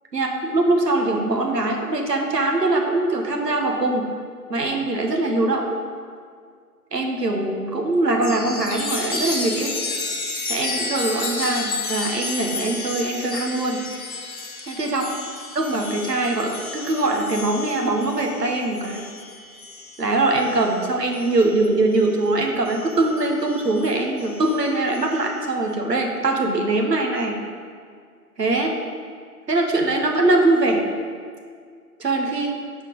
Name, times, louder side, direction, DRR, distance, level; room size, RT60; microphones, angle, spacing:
voice 1, 0.1-4.1 4.5-5.6 6.9-9.7 10.5-13.8 14.7-15.1 15.5-19.0 20.0-27.4 28.4-28.7 29.5-30.8 32.0-32.6, right 2 dB, 90° right, 2 dB, 1.4 m, -22 dB
Chime, 8.2-22.2 22.7-25.5, left 3 dB, 60° left, 1.0 m, -32 dB
9.0 x 4.3 x 4.7 m, 2.1 s
figure-of-eight pair, 170°, 47 cm